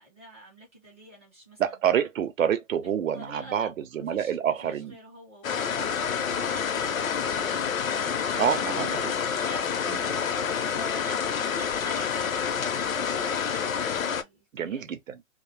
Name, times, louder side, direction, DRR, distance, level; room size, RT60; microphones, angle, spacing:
voice 1, 0.0-1.6 3.1-3.7 3.9-8.4 8.7-8.8 9.2-14.9, equal, 10° right, 0.4 m, -47 dB
voice 2, 1.6-5.0 8.4-9.1 9.9-10.0 14.5-15.2, right 9 dB, 70° right, 0.6 m, -27 dB
sound 1, 5.4-14.2, left 7 dB, 75° left, 0.6 m, -28 dB
2.4 x 2.0 x 3.1 m
figure-of-eight pair, 140°, 41 cm